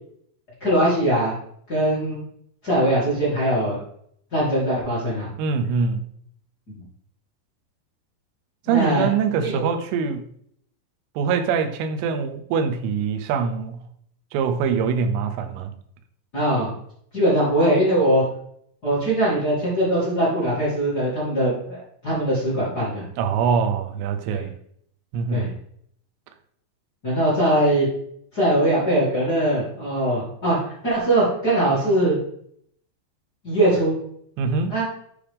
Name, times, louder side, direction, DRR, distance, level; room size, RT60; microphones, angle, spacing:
voice 1, 0.6-1.3 1.7-2.2 2.6-3.8 4.3-5.3 6.7-6.8 8.7-9.1 9.4-9.5 16.3-16.7 17.1-18.2 18.8-23.0 24.3-24.5 25.3-25.5 27.0-27.9 28.3-32.2 33.4-33.9 34.7-34.8, right 1 dB, 30° left, -9 dB, 1.9 m, -21 dB
voice 2, 5.4-6.0 8.7-10.3 11.2-13.8 14.3-15.7 23.2-24.5 25.1-25.5 34.4-34.8, right 6 dB, 85° right, 8 dB, 3.2 m, -23 dB
8.7 x 4.9 x 3.4 m, 0.67 s
omnidirectional pair, 5.5 m